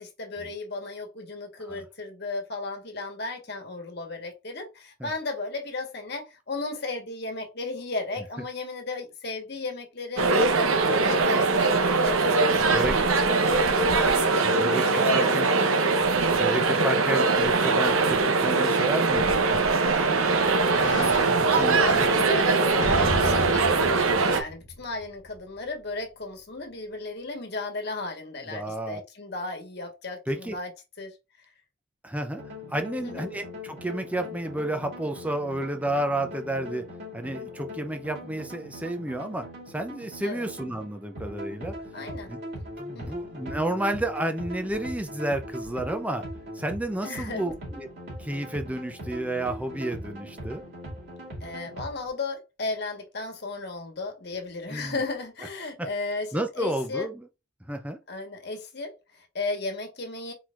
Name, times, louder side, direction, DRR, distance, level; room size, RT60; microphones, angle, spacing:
voice 1, 0.0-14.5 14.8-16.1 20.0-30.7 31.0-31.2 33.0-33.3 40.2-40.5 41.9-42.3 42.9-43.2 47.0-47.4 51.4-57.1 58.1-60.3, left 3 dB, 55° left, 1.4 m, -35 dB
sound 1, 10.2-24.4, right 3 dB, 90° right, 0.9 m, -22 dB
voice 2, 12.6-13.0 14.4-15.5 16.3-19.6 21.5-22.1 28.5-29.0 30.3-30.6 32.0-32.4 32.7-36.9 37.1-39.5 39.7-41.8 42.3-42.4 42.8-46.2 46.5-47.9 48.2-50.6 54.7-55.0 55.8-55.9 56.3-57.2 57.7-58.0, right 1 dB, 5° right, 0.6 m, -31 dB
sound 2, 19.3-25.4 25.9-26.0, left 1 dB, 70° left, 1.1 m, -36 dB
sound 3, 32.3-52.1, equal, 55° right, 2.5 m, -40 dB
4.5 x 4.0 x 2.5 m
head